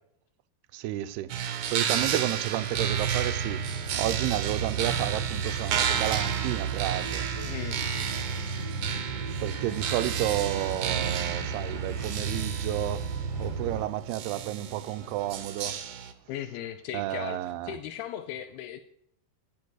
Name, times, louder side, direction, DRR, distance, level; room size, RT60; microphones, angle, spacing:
voice 1, 0.7-1.3 1.7-3.7 3.9-7.3 9.4-15.8 16.9-17.8, right 14 dB, 85° right, 2.7 m, -31 dB
sound 1, 1.3-16.1, right 8 dB, 60° right, 2.4 m, -32 dB
sound 2, 2.8-13.8, right 5 dB, 5° left, 5.7 m, -34 dB
voice 2, 7.3-7.9 16.3-18.8, left 11 dB, 85° left, 2.7 m, -37 dB
17.0 x 7.5 x 8.1 m
omnidirectional pair, 4.5 m